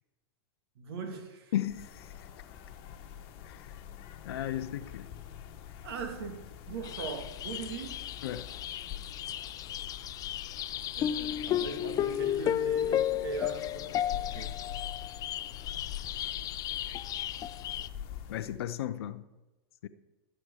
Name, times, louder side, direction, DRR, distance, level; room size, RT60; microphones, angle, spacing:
voice 1, 0.8-1.5 5.8-6.4 6.7-8.0 10.9-14.5, right 5 dB, 70° right, 2.6 m, -40 dB
voice 2, 1.5-2.1 3.5-3.7 4.2-5.1 8.2-8.5 18.3-19.2 19.8-19.9, left 12 dB, 70° left, 0.7 m, -35 dB
sound 1, 1.7-18.6, left 10 dB, 45° left, 1.3 m, -45 dB
sound 2, 6.8-17.9, left 11 dB, 30° left, 0.4 m, -34 dB
12.0 x 8.9 x 4.9 m
hypercardioid pair, 115°, 13 cm